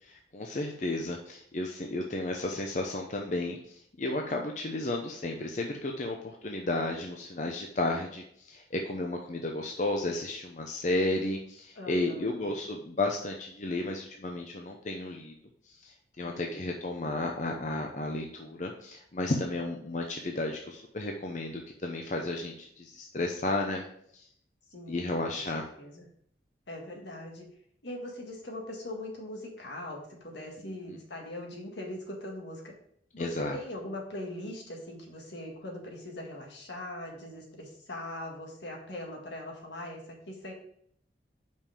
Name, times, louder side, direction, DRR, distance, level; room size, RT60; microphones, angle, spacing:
voice 1, 0.0-3.6 4.0-15.3 15.7-23.8 24.1-24.3 24.9-25.6 30.6-31.0 33.2-33.6, left 2 dB, 40° left, 2 dB, 0.6 m, -33 dB
voice 2, 11.7-12.5 16.2-16.7 24.7-26.1 26.7-27.5 27.8-32.7 33.1-40.5, left 1 dB, 75° left, 0 dB, 1.7 m, -41 dB
5.5 x 5.3 x 5.0 m, 0.68 s
head